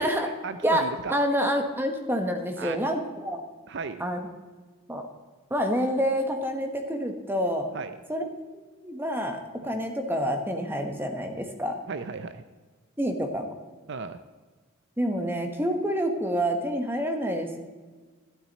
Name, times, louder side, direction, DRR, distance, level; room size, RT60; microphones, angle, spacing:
voice 1, 0.4-1.2 2.6-2.8 3.7-4.0 7.7-8.0 9.6-9.8 11.9-12.4 13.9-14.2, right 4 dB, 55° right, 10 dB, 0.5 m, -35 dB
voice 2, 1.1-3.4 4.0-4.3 4.9-5.1 5.5-7.7 8.1-8.3 8.5-11.8 13.0-13.4 15.0-17.6, equal, 10° right, 5 dB, 1.1 m, -27 dB
12.5 x 12.0 x 4.1 m, 1.4 s
head